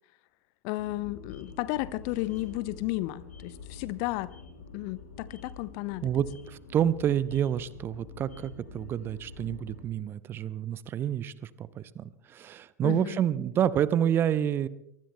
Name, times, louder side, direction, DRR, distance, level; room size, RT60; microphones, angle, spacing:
voice 1, 0.6-4.3 4.7-6.1 12.8-13.2, left 18 dB, 40° left, 17 dB, 0.7 m, -33 dB
sound 1, 0.8-9.8, left 4 dB, 70° left, 4.9 m, -47 dB
voice 2, 6.0-14.7, right 10 dB, 25° right, 18 dB, 0.6 m, -28 dB
23.5 x 23.0 x 2.2 m, 0.80 s
figure-of-eight pair, 90°, 9 cm